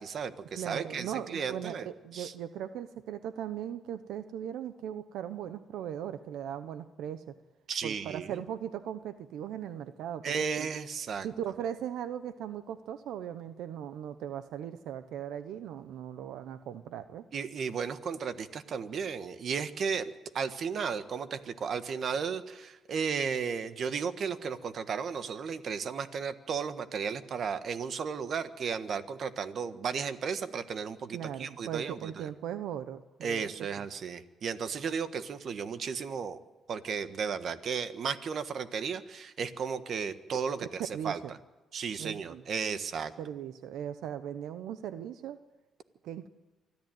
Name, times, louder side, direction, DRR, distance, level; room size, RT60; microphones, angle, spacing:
voice 1, 0.0-2.3 7.7-8.4 10.2-11.3 17.3-32.3 33.2-36.4 36.7-41.2 41.7-43.1, right 6 dB, 55° right, 11 dB, 1.4 m, -34 dB
voice 2, 0.5-7.3 7.8-10.7 11.2-17.3 31.1-33.5 40.9-41.3 42.0-42.4 43.2-45.4 46.0-46.3, right 10 dB, 85° right, 11 dB, 0.8 m, -38 dB
24.5 x 14.0 x 9.1 m, 1.1 s
cardioid pair, 90°, 0 cm